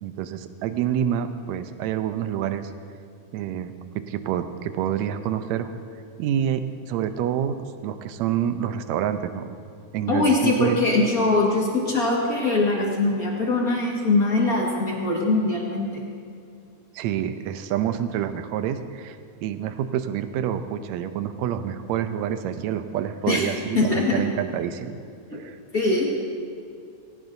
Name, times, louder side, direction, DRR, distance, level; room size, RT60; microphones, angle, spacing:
voice 1, 0.0-2.7 3.3-5.7 6.2-9.5 9.9-10.8 16.9-25.0 25.3-25.6, right 10 dB, 75° right, 10 dB, 1.9 m, -27 dB
voice 2, 10.1-16.0 23.3-23.4 23.7-24.2 25.3-25.4 25.7-26.0, left 2 dB, 35° left, -3 dB, 1.8 m, -22 dB
19.0 x 17.0 x 2.7 m, 2.4 s
omnidirectional pair, 3.4 m